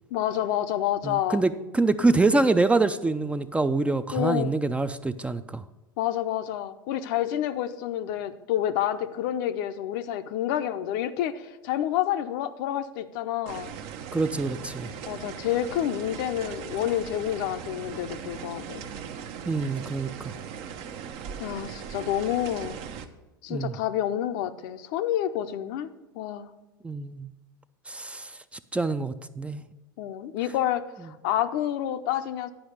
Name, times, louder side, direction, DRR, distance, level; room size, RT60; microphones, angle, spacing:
voice 1, 0.1-1.4 4.1-4.5 6.0-13.8 15.1-18.8 21.4-22.8 23.4-25.9 26.2-26.5 30.0-32.5, left 11 dB, 60° left, 9 dB, 0.6 m, -28 dB
voice 2, 1.0-5.6 14.1-14.9 19.5-20.3 23.5-23.7 26.8-27.3 27.9-28.3 28.7-29.6, right 3 dB, 10° right, 11 dB, 0.4 m, -25 dB
sound 1, 13.5-23.1, right 7 dB, 55° right, 0.8 m, -39 dB
10.0 x 4.9 x 6.5 m, 1.1 s
hypercardioid pair, 85°, 12 cm